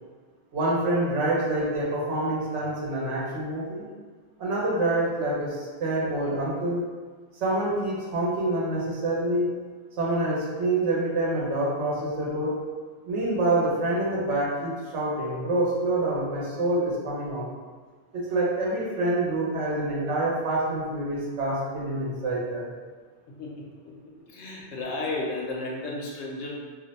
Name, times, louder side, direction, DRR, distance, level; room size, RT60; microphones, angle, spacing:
voice 1, 0.5-3.9 4.4-6.8 7.4-9.5 10.0-12.6 13.0-17.5 18.1-22.6, right 2 dB, 80° right, -5 dB, 1.0 m, -26 dB
voice 2, 23.3-26.5, left 2 dB, 75° left, -2 dB, 0.9 m, -34 dB
2.5 x 2.1 x 3.9 m, 1.5 s
omnidirectional pair, 1.2 m